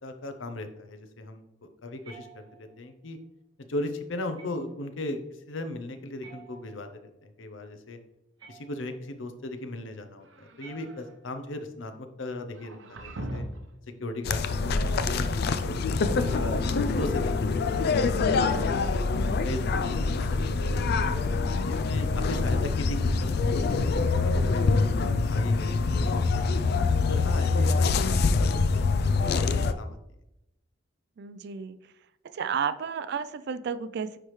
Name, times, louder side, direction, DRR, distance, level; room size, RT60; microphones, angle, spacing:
voice 1, 0.0-3.2 3.7-5.2 5.5-8.0 8.5-13.4 14.0-14.4 15.1-15.2 15.6-16.7 17.0-18.2 18.7-18.9 19.4-21.2 21.6-26.6 27.1-28.7 29.8-30.0, left 2 dB, 90° left, 7 dB, 0.7 m, -37 dB
sound 1, 2.0-2.9 4.4-4.9 6.2-7.1 8.4-9.1 10.6-11.5, right 6 dB, 25° right, 2.0 m, -52 dB
sound 2, 10.2-11.1 12.5-13.8, right 1 dB, 90° right, 0.8 m, -39 dB
sound 3, 14.2-29.7, left 4 dB, 55° left, 0.4 m, -25 dB
voice 2, 18.4-18.8 31.2-31.8 32.3-34.2, right 6 dB, 60° right, 13 dB, 0.4 m, -32 dB
9.8 x 3.3 x 3.1 m, 0.87 s
head